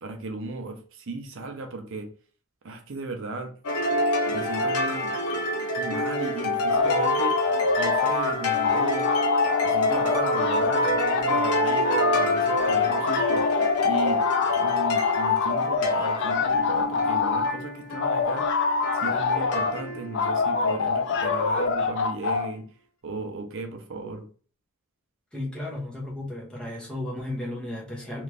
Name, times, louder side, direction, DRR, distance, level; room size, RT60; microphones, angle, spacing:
voice 1, 0.0-2.1 2.6-3.5 4.3-5.1 5.8-7.4 7.8-9.1 9.6-13.4 13.8-14.2 14.6-18.4 18.9-22.7 23.0-24.3, right 3 dB, 60° right, 0.6 m, -35 dB
sound 1, 3.6-21.5, left 1 dB, 85° left, 0.8 m, -28 dB
sound 2, 6.7-8.3 8.6-17.5 18.0-19.7 20.1-22.5, left 4 dB, 55° left, 0.4 m, -25 dB
voice 2, 25.3-28.2, left 1 dB, 5° left, 0.8 m, -34 dB
3.0 x 2.5 x 3.3 m
head